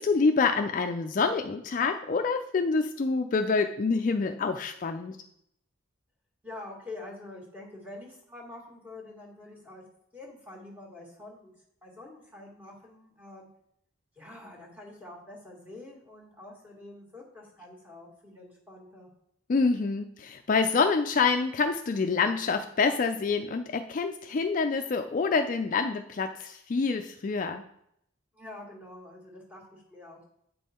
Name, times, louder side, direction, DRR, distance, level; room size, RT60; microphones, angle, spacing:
voice 1, 0.0-5.2 19.5-27.6, left 4 dB, 40° left, 6 dB, 0.3 m, -27 dB
voice 2, 6.4-9.8 10.1-11.5 11.8-13.5 14.1-19.1 28.3-30.2, left 2 dB, 10° right, -2 dB, 1.7 m, -46 dB
8.2 x 5.4 x 4.3 m, 0.74 s
head